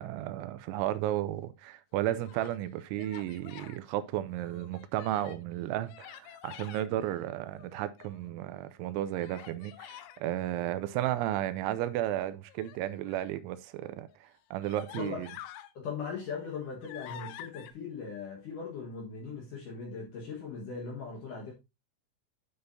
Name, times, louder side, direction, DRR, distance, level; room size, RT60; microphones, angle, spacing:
voice 1, 0.0-15.3, right 13 dB, 85° right, 2.9 m, -33 dB
Human voice, 2.0-2.6 3.0-3.8 4.3-5.5 5.9-6.9 7.5-8.3 9.2-10.2 12.5-13.4 14.1-14.2 14.6-15.7 16.2-17.7, left 12 dB, 85° left, 3.1 m, -48 dB
voice 2, 15.0-15.3 15.8-21.5, left 5 dB, 65° left, 2.2 m, -39 dB
9.6 x 6.8 x 2.6 m
omnidirectional pair, 5.6 m